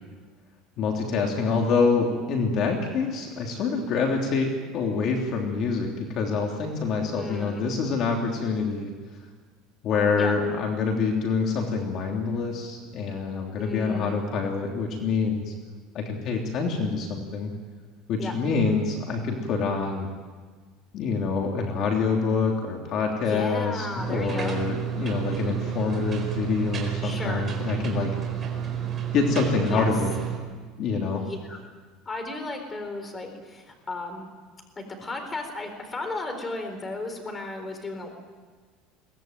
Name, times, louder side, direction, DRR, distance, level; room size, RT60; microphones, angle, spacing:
voice 1, 0.8-8.9 9.8-15.5 15.9-17.5 18.1-20.1 20.9-28.1 29.1-30.1 30.8-31.2, left 4 dB, 45° left, 1 dB, 3.1 m, -26 dB
voice 2, 7.2-7.6 10.2-10.3 13.5-14.2 18.2-18.3 23.2-24.6 27.0-27.5 29.7-29.9 31.2-31.6 32.1-34.3 34.8-38.1, left 2 dB, 20° left, 5 dB, 4.1 m, -34 dB
sound 1, 24.0-30.4, right 9 dB, 25° right, 4.6 m, -30 dB
23.0 x 18.5 x 9.2 m, 1.5 s
cardioid pair, 150°, 0 cm